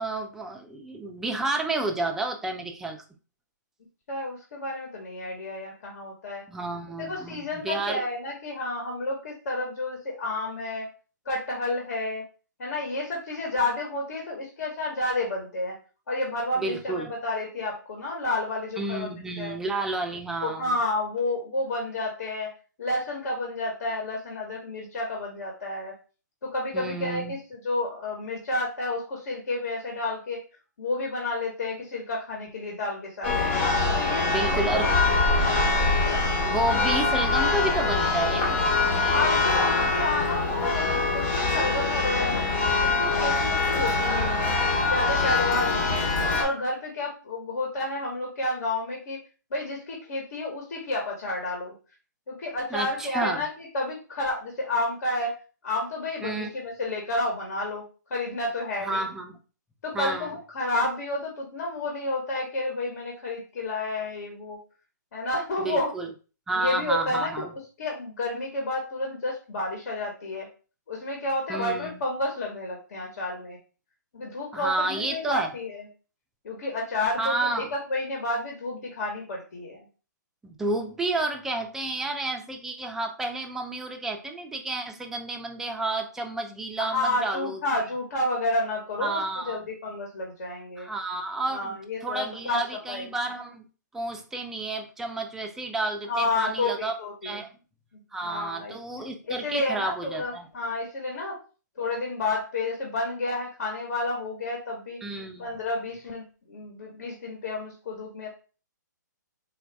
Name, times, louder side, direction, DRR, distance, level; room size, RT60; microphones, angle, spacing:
voice 1, 0.0-3.0 6.5-8.0 16.6-17.1 18.8-20.7 26.7-27.3 34.3-35.0 36.4-38.7 52.7-53.4 56.2-56.5 58.8-59.4 59.9-60.3 65.6-66.1 66.5-67.5 71.5-71.9 74.5-75.5 77.2-77.7 80.4-87.6 89.0-89.6 90.8-93.7 93.9-96.9 97.2-97.5 98.1-100.4 105.0-105.5, right 2 dB, 5° right, 3 dB, 0.3 m, -31 dB
voice 2, 4.1-6.4 7.0-10.9 11.2-12.2 12.6-15.7 16.1-19.1 19.4-19.6 20.4-22.5 22.8-25.9 26.4-30.4 30.8-33.3 33.9-35.6 39.1-42.4 42.8-44.5 44.8-46.1 46.4-49.2 49.5-51.7 52.3-55.3 55.6-57.8 58.1-59.1 59.8-64.6 65.1-65.9 66.5-67.4 67.8-70.5 70.9-73.6 74.1-75.8 76.4-79.8 86.8-90.9 91.5-92.6 92.9-93.1 96.1-97.4 97.9-98.8 99.2-101.4 101.8-105.0 105.4-108.3, left 2 dB, 60° left, 0 dB, 1.4 m, -30 dB
Church bell, 33.2-46.4, left 3 dB, 40° left, 1.2 m, -24 dB
3.9 x 2.5 x 3.4 m, 0.35 s
hypercardioid pair, 150°, 10 cm